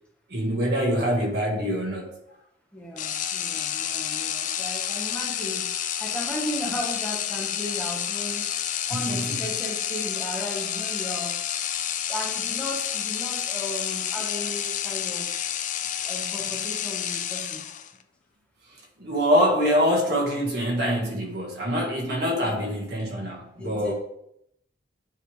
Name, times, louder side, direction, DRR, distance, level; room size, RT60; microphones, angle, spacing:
voice 1, 0.3-2.2 8.9-9.4 18.7-23.9, equal, 55° right, 1.7 m, -25 dB
voice 2, 2.7-5.7 6.0-8.5 8.9-11.4 12.1-15.3 16.0-17.7 22.3-22.7 23.0-23.1 23.6-23.9, equal, 5° left, 1.1 m, -36 dB
sound 1, 3.0-18.0, left 10 dB, 40° left, 0.4 m, -29 dB
9.5 x 3.3 x 4.8 m
head